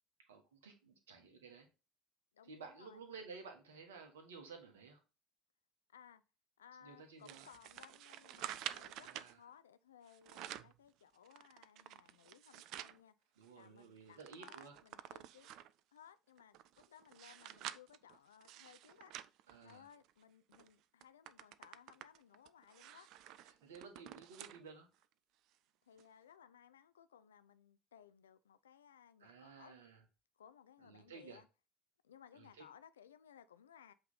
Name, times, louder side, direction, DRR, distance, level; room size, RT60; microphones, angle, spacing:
voice 1, 0.3-1.7 2.5-5.0 6.8-7.5 9.0-9.4 13.4-14.8 19.5-19.8 23.4-24.9 29.2-30.0 30.8-31.4 32.3-32.7, right 5 dB, 70° right, 1.4 m, -54 dB
voice 2, 2.3-3.0 5.9-6.2 6.6-13.1 13.5-15.6 15.9-19.1 19.6-23.1 25.9-29.7 30.4-31.5 32.0-33.9, left 9 dB, 75° left, 0.4 m, -62 dB
sound 1, 7.3-9.3 10.1-10.8 11.3-13.0 13.4-13.5 13.8-15.8 16.4-20.1 20.5-20.7 21.0-24.6 25.0-25.1 26.0-26.1, right 12 dB, 50° right, 0.4 m, -50 dB
8.0 x 3.3 x 3.9 m
figure-of-eight pair, 60°, 0 cm